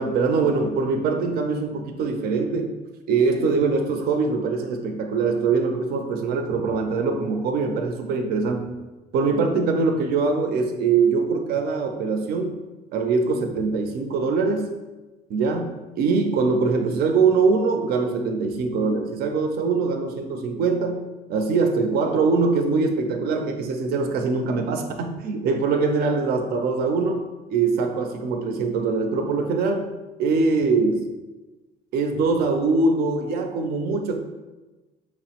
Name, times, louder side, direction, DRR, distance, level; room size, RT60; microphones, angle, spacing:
voice 1, 0.0-2.7 3.1-8.7 9.1-12.6 12.9-14.8 15.3-21.0 21.3-27.2 27.5-31.1 31.9-34.2, right 4 dB, 65° right, 4 dB, 0.5 m, -23 dB
5.8 x 2.0 x 2.8 m, 1.2 s
cardioid pair, 110°, 17 cm